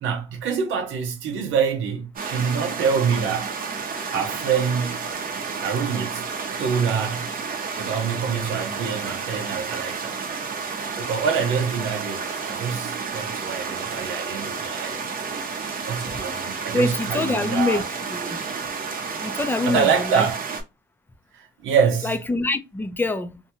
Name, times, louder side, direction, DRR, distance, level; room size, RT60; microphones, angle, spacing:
voice 1, 0.0-3.6 4.1-5.1 5.6-6.3 6.6-7.3 7.7-10.2 11.0-15.0 15.8-17.8 19.7-20.4 21.3-22.1, right 6 dB, 85° right, 0.7 m, -25 dB
sound 1, 2.2-20.6, right 5 dB, 45° right, 0.7 m, -31 dB
voice 2, 16.7-17.8 18.1-18.4 19.2-20.3 22.0-23.4, left 2 dB, 10° left, 0.4 m, -25 dB
2.7 x 2.2 x 2.8 m
cardioid pair, 90°, 20 cm